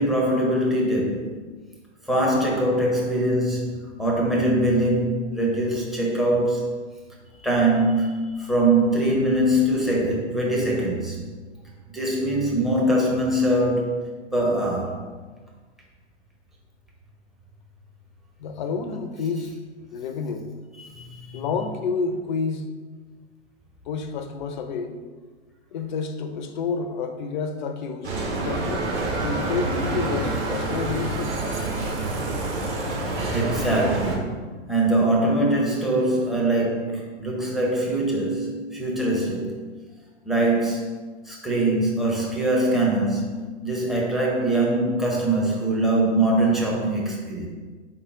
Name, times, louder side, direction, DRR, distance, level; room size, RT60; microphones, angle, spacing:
voice 1, 0.0-1.4 2.0-6.8 7.4-11.2 11.9-15.0 20.8-21.5 33.0-39.6 40.2-40.9 41.2-43.4 43.6-47.5, right 1 dB, ahead, -3 dB, 0.6 m, -23 dB
voice 2, 18.4-19.6 19.9-20.5 21.3-22.7 23.9-25.0 25.7-31.3, left 5 dB, 45° left, 7 dB, 0.5 m, -29 dB
Bicycle, 28.0-34.1, right 2 dB, 30° right, 1.0 m, -27 dB
4.0 x 3.7 x 3.5 m, 1.4 s
figure-of-eight pair, 105°, 35 cm